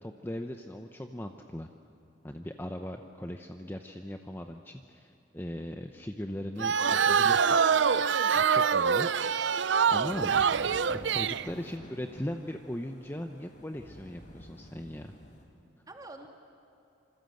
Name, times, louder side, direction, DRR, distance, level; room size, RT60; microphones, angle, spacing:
voice 1, 0.0-1.7 2.2-6.7 7.1-7.6 8.3-9.1 9.9-10.4 10.9-15.1, left 1 dB, 10° left, 5 dB, 0.8 m, -39 dB
voice 2, 6.6-7.1 11.3-11.7 15.9-16.3, right 2 dB, 20° right, 2 dB, 2.6 m, -48 dB
sound 1, 6.6-11.5, right 6 dB, 70° right, 0.5 m, -25 dB
sound 2, 10.0-15.4, equal, 45° left, 4.1 m, -49 dB
27.0 x 25.5 x 7.9 m, 2.8 s
head